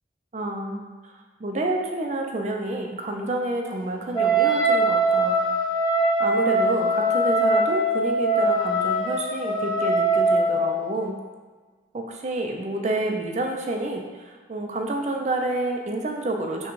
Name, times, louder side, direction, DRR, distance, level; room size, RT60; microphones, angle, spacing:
voice 1, 0.3-5.4 6.2-11.1 11.9-16.7, right 2 dB, 35° right, 2 dB, 0.4 m, -29 dB
Wind instrument woodwind instrument, 4.1-10.8, right 1 dB, 25° left, 0.5 m, -22 dB
5.8 x 2.2 x 3.1 m, 1.4 s
head